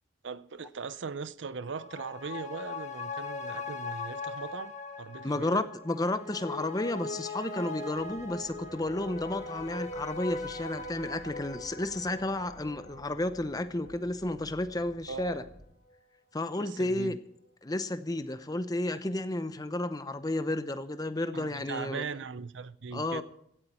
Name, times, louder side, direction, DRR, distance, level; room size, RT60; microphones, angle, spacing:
voice 1, 0.2-4.7 5.0-5.7 15.1-15.5 16.6-17.2 21.3-23.2, right 5 dB, 65° right, 0.6 m, -39 dB
sound 1, 1.6-14.5 14.8-14.9, left 3 dB, 35° left, 1.4 m, -40 dB
voice 2, 5.2-15.4 16.3-17.2 17.6-22.0 22.9-23.2, left 2 dB, 20° left, 0.7 m, -32 dB
sound 2, 7.9-15.7, equal, 20° right, 5.2 m, -55 dB
16.5 x 12.5 x 4.3 m
head